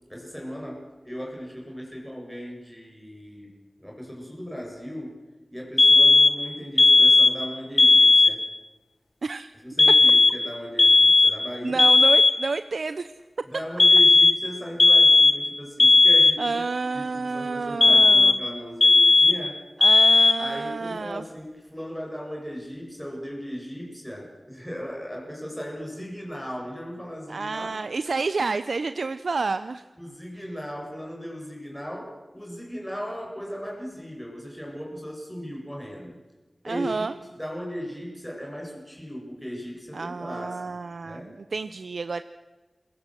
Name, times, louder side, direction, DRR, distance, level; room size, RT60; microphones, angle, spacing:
voice 1, 0.1-3.5 3.8-5.2 5.5-8.4 9.6-11.9 13.4-19.6 20.4-27.7 28.1-28.2 30.0-36.2 36.7-40.8 41.0-41.3, equal, 5° left, -1 dB, 7.7 m, -37 dB
sound 1, 5.8-6.4 6.8-7.4 7.8-8.4 9.8-10.5 10.8-11.5 11.8-12.5 13.8-14.5 14.8-15.5 15.8-16.5 17.8-18.5 18.8-19.5 19.8-20.5, left 3 dB, 50° left, 1.2 m, -16 dB
voice 2, 9.2-9.5 11.6-13.1 16.4-18.4 19.8-21.2 27.3-29.8 36.6-37.1 39.9-42.2, right 4 dB, 80° right, 11 dB, 0.8 m, -29 dB
27.5 x 22.0 x 7.8 m, 1.2 s
wide cardioid pair, 55°, 0 cm